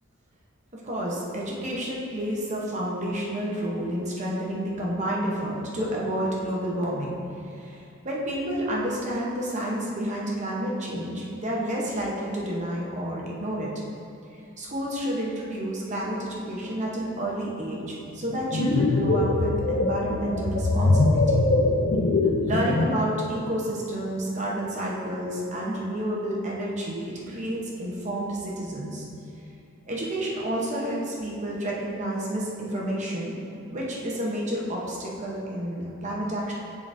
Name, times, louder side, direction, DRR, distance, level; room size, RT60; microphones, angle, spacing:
voice 1, 0.7-13.8 14.6-21.5 22.4-29.1 29.9-33.3 33.7-36.5, right 1 dB, 35° right, -4 dB, 0.8 m, -30 dB
sound 1, 18.3-23.1, left 2 dB, 50° left, 0.4 m, -22 dB
11.0 x 3.9 x 2.6 m, 2.7 s
head